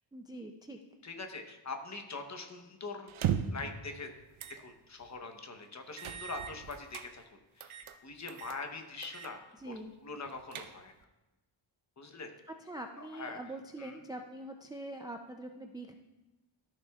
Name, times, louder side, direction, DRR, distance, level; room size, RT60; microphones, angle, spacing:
voice 1, 0.1-0.8 9.6-9.9 12.6-15.9, right 1 dB, 10° right, 3 dB, 0.3 m, -44 dB
voice 2, 1.0-4.1 4.6-7.2 7.6-9.4 9.7-9.8 10.0-10.9 12.0-12.3 12.9-13.4 13.8-14.0, left 3 dB, 35° left, 5 dB, 0.9 m, -43 dB
sound 1, 3.1-3.7 4.4-4.6 5.0-5.1 6.0-7.1 7.6-8.0 8.3-8.6 9.0-9.3 9.7-9.8 10.2-11.0, right 9 dB, 80° right, 0.7 m, -36 dB
13.5 x 6.4 x 2.3 m, 1.0 s
wide cardioid pair, 130°, 48 cm